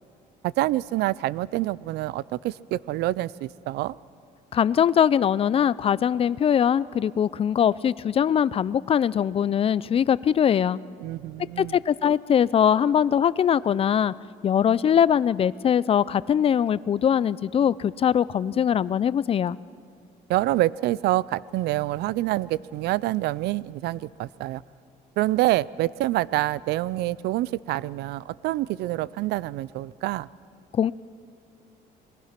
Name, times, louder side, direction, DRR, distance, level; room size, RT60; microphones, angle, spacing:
voice 1, 0.4-4.0 11.0-11.8 20.3-24.6 25.2-30.3, right 16 dB, 80° right, 21 dB, 0.5 m, -26 dB
voice 2, 4.5-10.8 11.6-14.1 14.4-19.6 30.7-30.9, left 8 dB, 35° left, 19 dB, 0.4 m, -22 dB
27.5 x 20.0 x 5.9 m, 2.4 s
cardioid pair, 110°, 17 cm